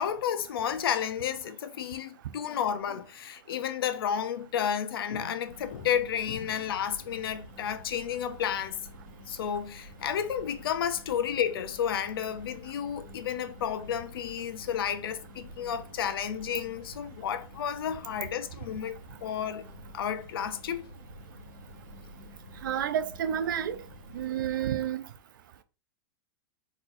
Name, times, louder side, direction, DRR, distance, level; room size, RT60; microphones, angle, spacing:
voice 1, 0.0-8.8 9.3-19.7 19.9-20.9, left 8 dB, 90° left, 0.7 m, -31 dB
sound 1, 5.5-24.7, equal, 35° right, 2.3 m, -49 dB
voice 2, 22.6-23.8 24.1-25.1, right 9 dB, 60° right, 0.5 m, -30 dB
4.4 x 4.2 x 2.6 m
supercardioid pair, 175°, 12 cm